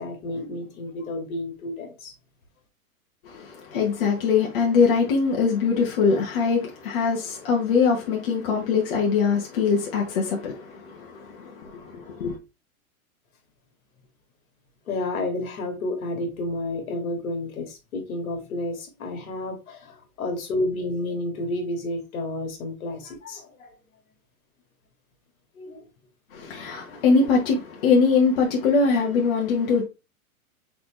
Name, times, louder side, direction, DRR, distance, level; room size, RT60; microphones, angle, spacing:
voice 1, 0.0-2.1 14.9-23.7 25.6-25.9 26.9-27.1, left 2 dB, 70° left, 1.8 m, -31 dB
voice 2, 3.3-12.4 26.3-29.8, left 5 dB, 40° left, 1.1 m, -22 dB
4.2 x 4.0 x 3.0 m
supercardioid pair, 175°, 43 cm